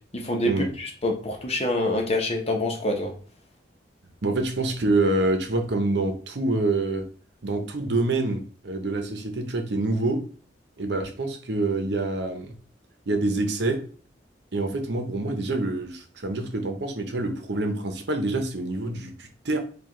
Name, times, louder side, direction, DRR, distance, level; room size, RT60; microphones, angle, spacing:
voice 1, 0.1-3.1, left 1 dB, 35° left, 2 dB, 0.8 m, -26 dB
voice 2, 4.2-7.0 7.4-10.2 10.8-12.5 13.1-13.8 14.5-19.6, right 2 dB, 70° right, 5 dB, 0.8 m, -26 dB
4.8 x 2.4 x 3.7 m, 0.41 s
head